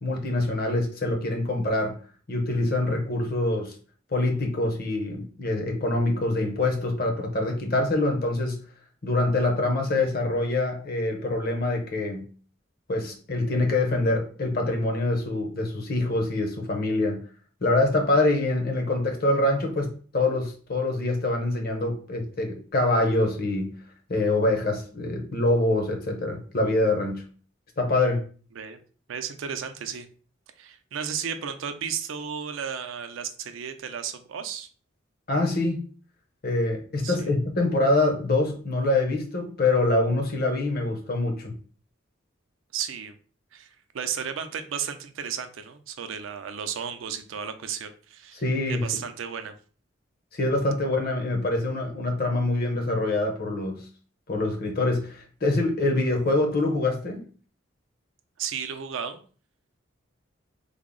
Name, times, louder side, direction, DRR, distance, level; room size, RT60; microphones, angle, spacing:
voice 1, 0.0-2.0 2.3-3.7 4.1-8.6 9.0-12.3 12.9-17.2 17.6-23.7 24.1-27.2 27.8-28.2 35.3-35.8 36.4-41.6 48.4-48.9 50.3-53.8 54.3-57.2, left 2 dB, 50° left, 3 dB, 0.7 m, -25 dB
voice 2, 29.1-30.1 30.6-34.7 37.0-37.3 42.7-43.2 43.5-48.4 48.7-49.5 58.4-59.2, right 7 dB, 75° right, 8 dB, 0.4 m, -34 dB
3.4 x 2.0 x 3.7 m, 0.40 s
head